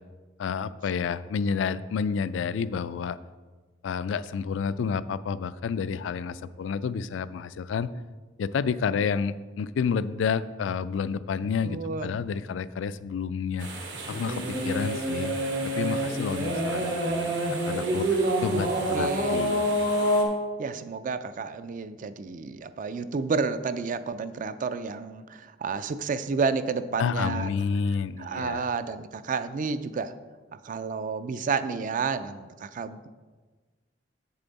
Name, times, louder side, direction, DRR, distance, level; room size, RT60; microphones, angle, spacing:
voice 1, 0.4-3.2 3.8-7.9 8.4-13.7 14.1-15.3 15.6-17.4 17.7-19.6 27.0-28.7, left 6 dB, 80° left, 15 dB, 0.3 m, -30 dB
voice 2, 11.6-12.1 18.4-18.7 18.9-19.5 20.6-27.7 28.2-30.1 30.6-33.1, right 5 dB, 45° right, 12 dB, 0.4 m, -31 dB
sound 1, 13.6-20.2, right 1 dB, 70° right, 1.6 m, -27 dB
8.4 x 6.8 x 4.0 m, 1.3 s
head